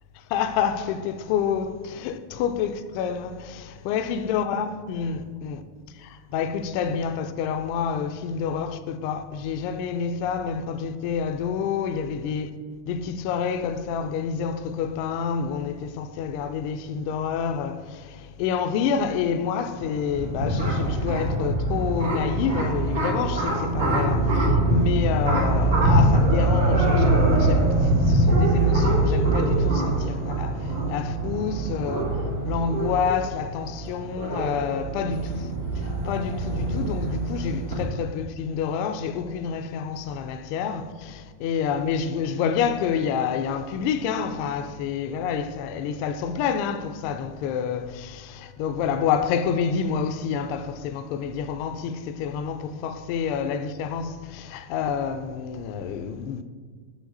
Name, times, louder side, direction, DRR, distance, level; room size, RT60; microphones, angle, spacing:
voice 1, 0.3-5.6 6.0-12.5 12.9-32.0 32.4-56.4, left 7 dB, 55° left, 0.5 m, -28 dB
sound 1, 19.7-37.8, right 1 dB, 85° right, 1.6 m, -23 dB
5.9 x 5.1 x 4.0 m
hypercardioid pair, 115°, 0 cm